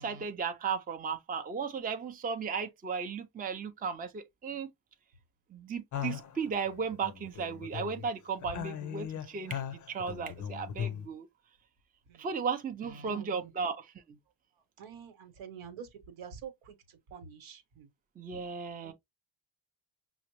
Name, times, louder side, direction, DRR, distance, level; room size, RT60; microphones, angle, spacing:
voice 1, 0.0-4.7 5.5-9.6 9.9-11.3 12.2-13.9 18.2-18.9, right 5 dB, 20° right, 0.5 m, -35 dB
sound 1, 5.9-8.1 8.4-11.1, left 9 dB, 40° left, 0.5 m, -39 dB
voice 2, 13.1-13.5 14.8-17.9 18.8-18.9, right 7 dB, 75° right, 1.1 m, -47 dB
5.5 x 2.0 x 2.9 m
cardioid pair, 100°, 48 cm